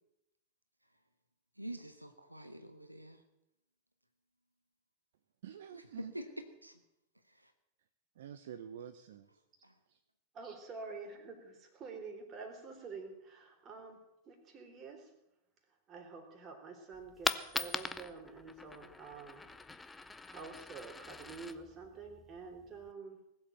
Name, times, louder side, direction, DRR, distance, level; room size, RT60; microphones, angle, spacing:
voice 1, 1.6-3.2 6.1-6.3 6.6-6.8 7.3-7.5 9.6-9.7, right 1 dB, 85° right, 8 dB, 1.2 m, -47 dB
voice 2, 5.4-6.1 8.2-9.4 9.9-10.0, right 9 dB, 60° right, 11 dB, 0.8 m, -48 dB
voice 3, 10.3-15.1 15.9-19.5 20.0-23.3, right 4 dB, 30° right, 4 dB, 3.6 m, -48 dB
Coin (dropping), 16.9-22.9, left 3 dB, 10° left, 0.8 m, -42 dB
19.5 x 8.0 x 9.1 m, 0.86 s
figure-of-eight pair, 90°, 0 cm